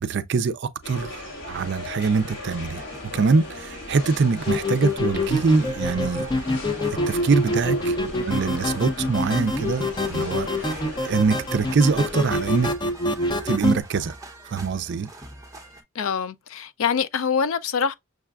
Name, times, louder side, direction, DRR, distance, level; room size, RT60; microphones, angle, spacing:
voice 1, 0.0-2.9 3.1-6.2 7.1-8.0 8.3-10.8 11.0-12.7 13.2-14.1 14.5-15.1, right 4 dB, 55° right, 0.4 m, -24 dB
sound 1, 0.8-12.7, left 2 dB, 50° left, 1.8 m, -37 dB
sound 2, 1.2-15.8, right 1 dB, 15° right, 0.7 m, -45 dB
sound 3, 4.5-13.8, left 1 dB, 20° left, 0.5 m, -26 dB
voice 2, 16.0-17.9, left 6 dB, 70° left, 0.4 m, -24 dB
6.4 x 2.4 x 2.3 m
head